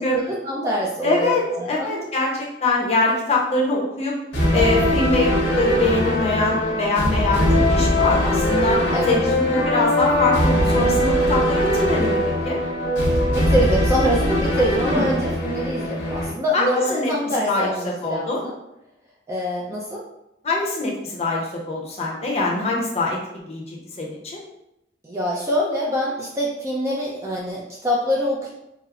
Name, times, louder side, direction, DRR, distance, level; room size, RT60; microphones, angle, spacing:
voice 1, 0.0-2.1 8.9-9.2 13.3-18.5 19.3-20.0 25.0-28.5, equal, 15° right, -4 dB, 0.4 m, -25 dB
voice 2, 1.0-4.2 4.5-12.6 14.8-15.1 16.5-18.4 20.4-23.2 23.4-24.4, left 2 dB, 35° left, -2 dB, 0.6 m, -23 dB
sound 1, 4.3-16.3, left 1 dB, 75° left, 1.0 m, -21 dB
4.6 x 2.0 x 2.4 m, 0.85 s
head